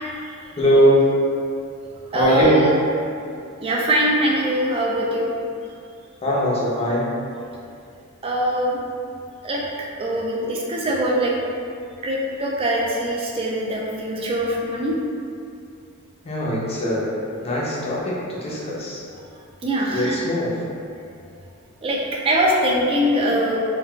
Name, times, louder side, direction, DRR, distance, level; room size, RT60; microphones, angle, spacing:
voice 1, 0.6-1.1 2.1-2.6 6.2-7.1 16.2-17.0 17.4-19.0 19.9-20.5, equal, 30° left, -6 dB, 0.5 m, -20 dB
voice 2, 2.1-2.7 3.6-5.3 8.2-8.8 9.4-9.6 10.0-11.3 12.0-15.0 19.6-20.2 21.8-23.6, right 1 dB, 25° right, -3 dB, 0.3 m, -22 dB
3.8 x 2.3 x 2.2 m, 2.4 s
head